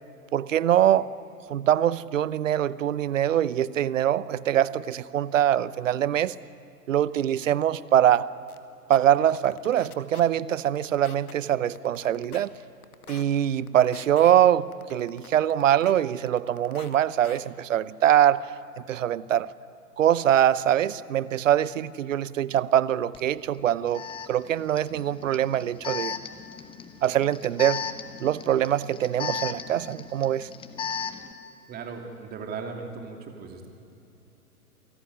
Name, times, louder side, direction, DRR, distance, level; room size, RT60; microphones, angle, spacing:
voice 1, 0.3-1.1 1.5-6.4 6.9-8.3 8.9-12.5 13.1-18.5 18.9-19.5 20.0-26.2 27.0-27.8 28.2-30.5, right 11 dB, 55° right, 0.8 m, -23 dB
sound 1, 8.5-8.6 8.9-9.0 9.4-10.2 10.5-11.3 11.7-12.5 12.8-13.2 13.7-14.3 14.7-15.9 16.3-17.0 17.2-17.4, left 7 dB, 65° left, 2.1 m, -46 dB
Alarm, 23.1-23.2 23.9-31.3, left 7 dB, 10° left, 1.0 m, -36 dB
voice 2, 31.7-33.7, right 5 dB, 20° right, 2.9 m, -37 dB
28.5 x 17.5 x 9.7 m
figure-of-eight pair, 115°, 47 cm